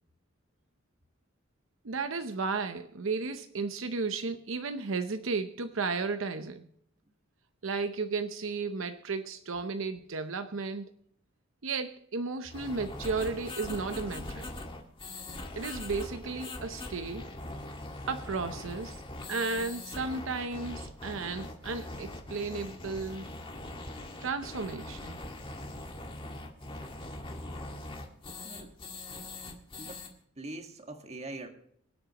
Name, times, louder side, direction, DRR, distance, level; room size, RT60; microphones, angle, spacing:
voice 1, 1.8-6.7 7.6-10.9 11.6-14.5 15.6-17.3 18.1-19.0 19.3-23.3 24.2-25.2, right 4 dB, 75° right, 0.7 m, -34 dB
sound 1, 12.5-30.1, left 2 dB, 25° left, 1.8 m, -41 dB
voice 2, 28.4-28.7 29.8-30.1 30.4-31.5, right 2 dB, 35° right, 1.6 m, -42 dB
25.5 x 8.7 x 3.0 m
head